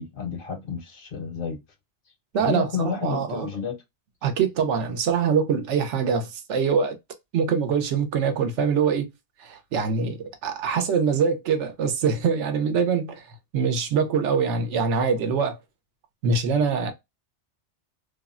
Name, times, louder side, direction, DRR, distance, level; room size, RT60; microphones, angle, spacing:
voice 1, 0.0-1.6 2.4-3.8, left 6 dB, 60° left, 0.6 m, -30 dB
voice 2, 2.3-3.5 4.2-7.0 7.3-9.1 9.4-13.2 13.5-15.6 16.2-16.9, right 6 dB, 80° right, 0.9 m, -24 dB
3.3 x 2.0 x 2.4 m
omnidirectional pair, 1.2 m